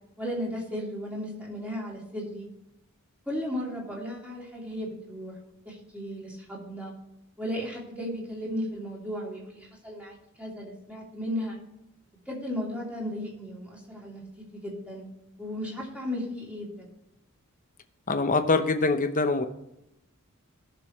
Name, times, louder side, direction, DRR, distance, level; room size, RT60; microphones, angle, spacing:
voice 1, 0.2-2.5 3.3-5.4 5.6-6.9 7.4-11.6 12.3-14.2 14.6-15.0 15.4-16.9, equal, 5° right, -4 dB, 3.1 m, -35 dB
voice 2, 18.1-19.5, left 3 dB, 35° left, 8 dB, 0.8 m, -24 dB
18.0 x 6.8 x 3.2 m, 0.86 s
head